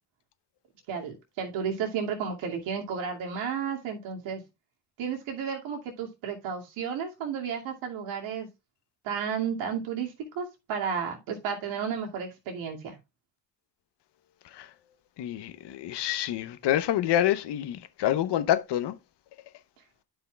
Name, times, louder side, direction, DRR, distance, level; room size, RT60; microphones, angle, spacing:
voice 1, 0.9-4.4 5.0-8.5 9.0-13.0, right 7 dB, 70° right, 2.5 m, -32 dB
voice 2, 15.2-18.9, left 12 dB, 60° left, 1.0 m, -27 dB
12.0 x 5.7 x 2.3 m
hypercardioid pair, 55°, 48 cm